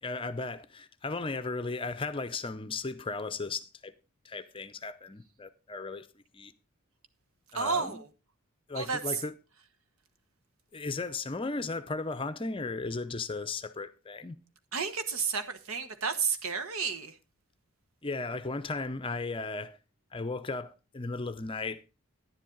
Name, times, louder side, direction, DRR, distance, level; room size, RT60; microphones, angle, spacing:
voice 1, 0.0-3.9 4.2-6.5 7.5-8.0 8.7-9.3 10.7-14.4 18.0-19.8 20.1-21.8, left 3 dB, 25° left, 0.6 m, -36 dB
voice 2, 7.5-8.1 8.7-9.0 14.7-17.2, right 5 dB, 80° right, 1.3 m, -31 dB
10.5 x 10.5 x 3.9 m
head